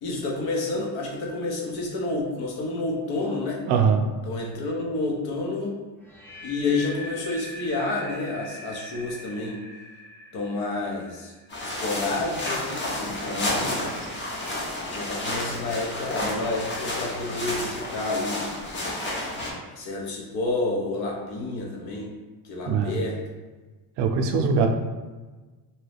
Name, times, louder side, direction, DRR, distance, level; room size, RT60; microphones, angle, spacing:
voice 1, 0.0-3.6 4.2-5.7 6.4-9.6 10.3-11.3 11.6-13.9 14.9-18.5 19.3-22.1 22.4-23.2, left 2 dB, 55° left, -1 dB, 0.9 m, -29 dB
voice 2, 3.7-4.0 22.7-23.0 24.0-24.7, right 6 dB, 65° right, 4 dB, 0.5 m, -21 dB
sound 1, 6.0-12.0, left 1 dB, 5° left, 0.3 m, -42 dB
sound 2, 11.5-19.5, left 1 dB, 25° left, 0.8 m, -31 dB
2.8 x 2.3 x 3.3 m, 1.3 s
cardioid pair, 115°, 44 cm